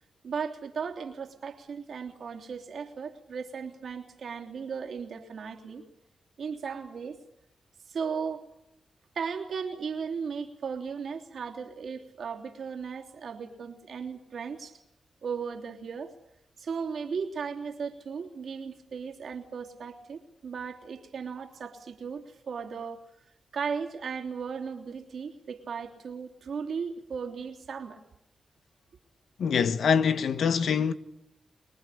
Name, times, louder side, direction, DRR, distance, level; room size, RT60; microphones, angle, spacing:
voice 1, 0.2-5.8 6.4-7.2 7.9-8.4 9.1-14.8 15.2-16.1 16.6-23.0 23.5-28.0, right 6 dB, 75° right, 3.2 m, -36 dB
voice 2, 29.4-30.9, left 6 dB, 80° left, 1.2 m, -24 dB
24.5 x 22.0 x 8.6 m
supercardioid pair, 45°, 0 cm